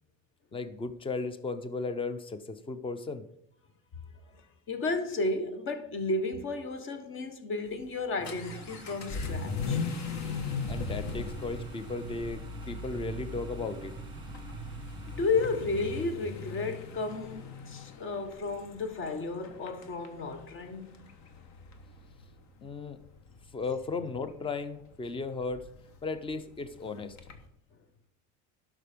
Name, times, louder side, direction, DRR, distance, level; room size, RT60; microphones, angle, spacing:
voice 1, 0.5-3.2 10.7-13.9 22.6-23.0 23.5-25.7 26.0-27.2, left 4 dB, 15° left, 0.6 m, -35 dB
voice 2, 4.3-9.8 15.1-21.0, left 3 dB, 40° left, 1.3 m, -33 dB
Vehicle / Accelerating revving vroom, 7.7-27.5, left 4 dB, 55° left, 1.3 m, -40 dB
sound 1, 8.2-16.1, right 6 dB, 15° right, 1.5 m, -45 dB
11.5 x 6.1 x 5.1 m
cardioid pair, 145°, 32 cm